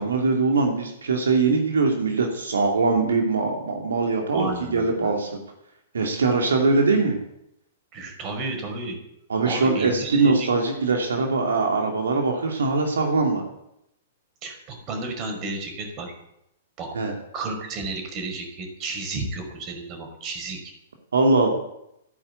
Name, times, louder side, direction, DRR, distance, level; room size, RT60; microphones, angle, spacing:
voice 1, 0.0-5.4 5.9-7.2 9.3-13.4 16.9-17.1 21.1-21.5, right 3 dB, 70° right, 2 dB, 2.8 m, -22 dB
voice 2, 4.3-5.1 7.9-9.0 9.4-10.5 14.4-16.1 16.8-16.9 17.3-20.6, right 3 dB, 35° right, 4 dB, 5.3 m, -32 dB
15.5 x 10.0 x 8.3 m, 0.80 s
figure-of-eight pair, 110°, 0 cm